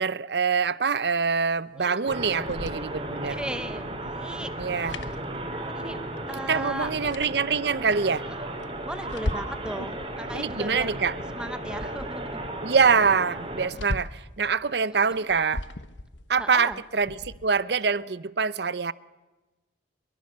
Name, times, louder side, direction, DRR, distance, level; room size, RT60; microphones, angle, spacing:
voice 1, 0.0-3.4 4.6-4.9 6.5-8.3 9.8-9.9 10.3-11.1 12.6-15.6 16.3-18.9, right 5 dB, 65° right, 0.7 m, -25 dB
sound 1, 2.1-13.7, right 1 dB, 30° right, 3.5 m, -35 dB
sound 2, 2.2-5.9 6.2-6.3 6.6-7.9 8.4-9.7 10.0-12.6 12.9-13.0 13.3-14.3 15.0-17.5, left 1 dB, 85° left, 1.2 m, -39 dB
voice 2, 3.3-4.5 4.8-5.1 5.7-6.0 6.3-6.9 8.3-8.4 8.8-11.0 11.3-12.4 15.1-15.2 16.4-16.8, right 1 dB, 5° right, 0.7 m, -37 dB
25.5 x 22.5 x 7.4 m
head